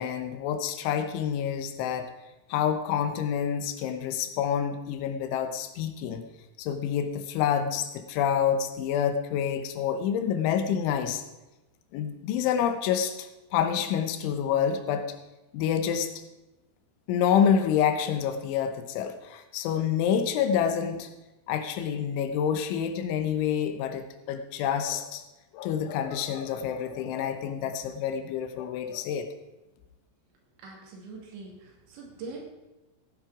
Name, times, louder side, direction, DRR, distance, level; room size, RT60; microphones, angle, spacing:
voice 1, 0.0-2.1 2.5-6.3 6.6-11.2 11.9-15.1 15.5-16.1 17.1-21.1 21.5-25.2 25.5-29.3, left 8 dB, 80° left, 8 dB, 3.2 m, -27 dB
voice 2, 30.6-32.4, right 3 dB, 70° right, 0 dB, 4.6 m, -43 dB
15.5 x 9.6 x 4.9 m, 1.0 s
omnidirectional pair, 5.6 m